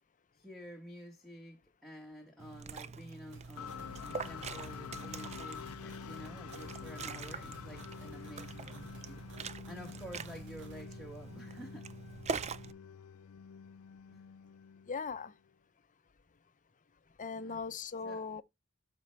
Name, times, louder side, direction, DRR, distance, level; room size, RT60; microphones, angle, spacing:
voice 1, 0.3-11.9 14.1-14.2 17.3-17.6 18.0-18.3, equal, ahead, 1.3 m, -50 dB
Liquid, 2.4-12.7, right 5 dB, 30° right, 0.5 m, -44 dB
sound 1, 3.3-10.8, right 2 dB, 60° right, 2.1 m, -56 dB
sound 2, 3.6-15.3, left 7 dB, 85° left, 0.4 m, -48 dB
voice 2, 14.9-15.3 17.2-18.4, left 5 dB, 35° left, 0.6 m, -39 dB
12.5 x 4.5 x 3.2 m
head